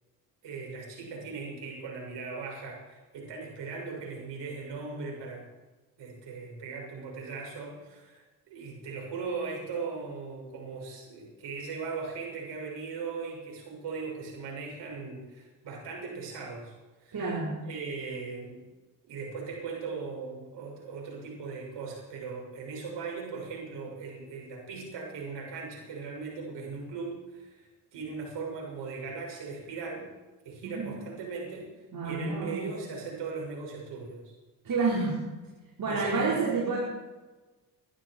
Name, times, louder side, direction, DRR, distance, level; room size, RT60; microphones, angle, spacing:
voice 1, 0.4-5.4 6.0-16.7 17.0-17.2 17.6-18.6 19.0-30.1 30.4-31.7 32.0-34.3 35.9-36.4, right 4 dB, 65° right, -2 dB, 6.6 m, -38 dB
voice 2, 17.1-17.5 30.6-30.8 31.9-32.6 34.6-35.2 35.8-36.8, right 4 dB, 50° right, -6 dB, 5.0 m, -29 dB
21.0 x 11.5 x 4.7 m, 1.2 s
hypercardioid pair, 55°, 45 cm